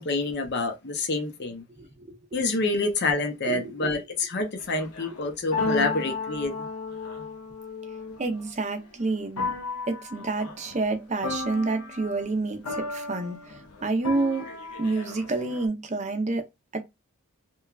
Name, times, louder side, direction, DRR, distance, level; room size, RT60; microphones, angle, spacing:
voice 1, 0.0-1.6 2.3-6.5, left 2 dB, 50° left, 0.6 m, -27 dB
voice 2, 1.8-2.2 3.5-4.0 8.2-9.6 9.9-14.5 14.8-16.5 16.7-16.8, right 3 dB, 30° right, 0.5 m, -29 dB
sound 1, 4.6-8.9 9.4-10.9 11.2-12.3 12.6-15.7, left 3 dB, 80° left, 0.7 m, -34 dB
3.0 x 2.2 x 2.3 m
head